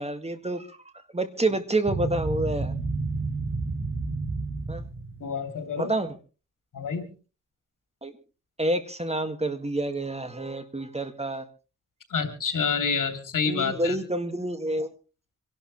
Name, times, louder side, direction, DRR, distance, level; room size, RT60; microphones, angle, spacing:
voice 1, 0.0-2.8 4.7-4.8 5.8-6.2 8.0-8.2 8.6-11.5 13.5-14.9, right 1 dB, 20° right, 8 dB, 1.9 m, -28 dB
sound 1, 1.9-5.2, right 3 dB, 45° right, 6.4 m, -30 dB
voice 2, 5.2-5.9 6.7-7.1 12.1-13.9, left 5 dB, 90° left, 6 dB, 3.0 m, -28 dB
26.0 x 12.0 x 3.2 m, 0.35 s
wide cardioid pair, 90°, 31 cm